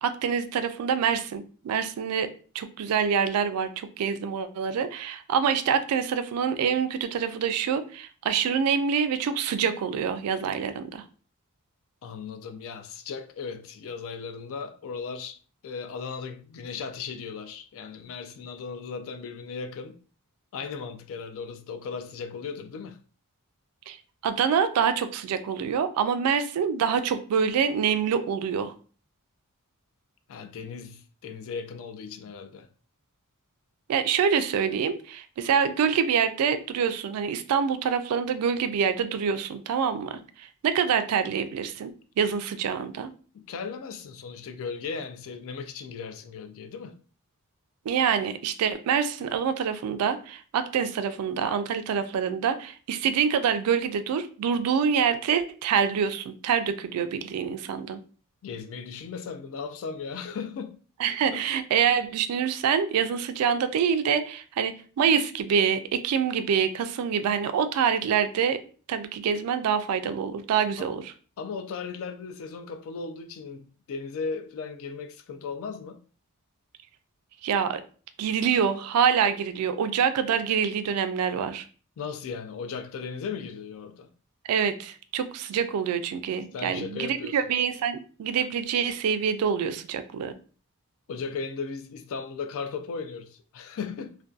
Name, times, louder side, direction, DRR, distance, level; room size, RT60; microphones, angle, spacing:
voice 1, 0.0-11.0 23.9-24.0 24.2-28.7 33.9-41.9 42.2-43.1 47.9-58.0 61.0-68.6 68.9-71.1 77.4-77.8 78.2-81.6 84.5-90.4, right 7 dB, 75° right, 0.3 m, -26 dB
voice 2, 12.0-15.4 15.6-20.0 20.5-23.0 30.3-32.7 43.3-47.0 58.4-60.8 61.3-61.5 70.8-70.9 71.4-76.0 82.0-84.1 86.5-87.4 91.1-94.2, left 5 dB, 65° left, 0.3 m, -37 dB
2.5 x 2.2 x 2.3 m
head